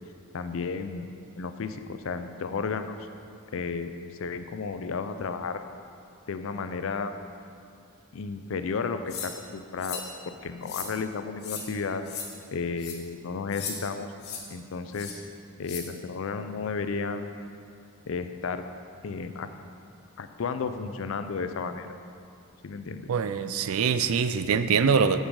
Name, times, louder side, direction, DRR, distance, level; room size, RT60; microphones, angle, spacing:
voice 1, 0.3-1.1 1.4-3.0 3.5-3.9 4.2-5.6 6.3-7.1 8.1-12.0 12.5-14.1 14.5-15.2 15.6-17.3 18.1-18.6 19.0-19.5 20.2-21.9 22.6-23.1, left 5 dB, 65° left, 9 dB, 0.4 m, -33 dB
sound 1, 9.1-9.3 9.8-10.1 10.6-10.9 11.4-11.6 12.1-12.3 12.8-13.0 13.5-13.8 14.2-14.4 14.9-15.1 15.6-15.8, left 6 dB, 50° left, 1.2 m, -36 dB
voice 2, 23.1-25.2, right 6 dB, 75° right, 11 dB, 0.4 m, -24 dB
7.4 x 7.1 x 4.8 m, 2.4 s
head